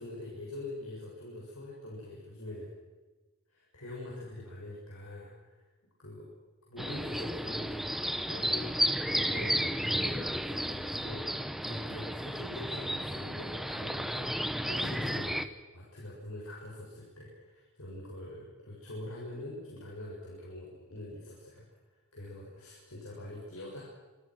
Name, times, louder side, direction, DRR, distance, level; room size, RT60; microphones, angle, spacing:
voice 1, 0.0-2.7 3.5-5.7 6.0-6.3 6.7-8.7 9.1-15.5 15.7-23.8, left 1 dB, 85° left, -4 dB, 7.0 m, -44 dB
sound 1, 6.8-15.5, equal, ahead, 1.1 m, -33 dB
26.5 x 26.0 x 6.3 m, 1.2 s
head